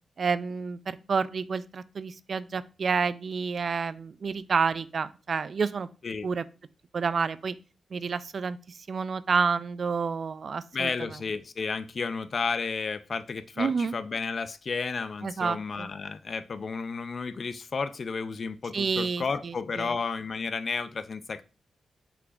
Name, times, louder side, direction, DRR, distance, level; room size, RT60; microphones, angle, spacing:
voice 1, 0.2-5.9 6.2-6.4 6.9-7.6 7.9-8.6 8.9-11.2 13.6-13.9 15.2-15.9 18.7-20.0, right 5 dB, 60° right, 16 dB, 0.3 m, -29 dB
voice 2, 10.7-21.4, left 4 dB, 55° left, 13 dB, 0.4 m, -32 dB
5.6 x 3.9 x 2.4 m, 0.33 s
cardioid pair, 55°, 0 cm